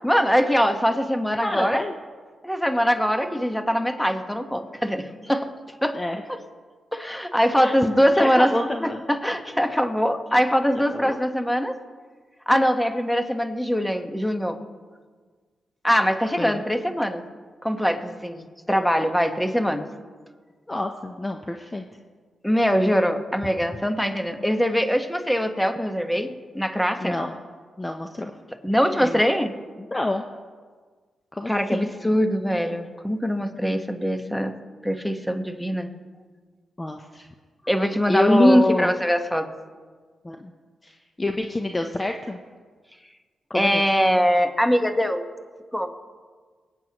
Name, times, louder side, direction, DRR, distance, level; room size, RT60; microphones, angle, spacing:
voice 1, 0.0-1.8 2.4-5.5 5.8-6.0 6.9-8.5 8.8-11.8 12.5-14.6 15.8-17.2 17.6-19.9 22.4-27.2 28.6-29.5 31.5-34.5 34.8-35.9 37.6-39.5 43.5-45.3 45.7-46.0, equal, 5° left, 6 dB, 1.3 m, -22 dB
voice 2, 1.4-2.0 5.9-6.2 7.6-7.7 8.1-9.0 10.7-11.2 16.4-16.6 20.7-21.8 27.0-27.3 27.8-28.3 29.0-29.2 29.9-30.2 31.3-31.9 36.8-37.3 38.1-38.9 40.2-40.5 40.8-42.4 43.5-43.8, left 2 dB, 25° left, 4 dB, 0.8 m, -27 dB
23.5 x 9.1 x 3.1 m, 1.5 s
cardioid pair, 60°, 0 cm